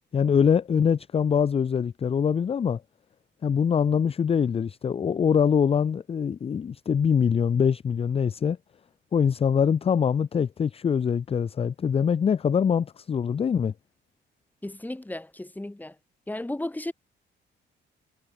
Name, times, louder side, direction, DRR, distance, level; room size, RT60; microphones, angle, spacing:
voice 1, 0.1-2.8 3.4-8.6 9.1-13.7, left 7 dB, 30° left, 0.4 m, -23 dB
voice 2, 14.6-16.0 16.3-16.9, left 1 dB, 10° left, 1.8 m, -34 dB
cardioid pair, 90°, 20 cm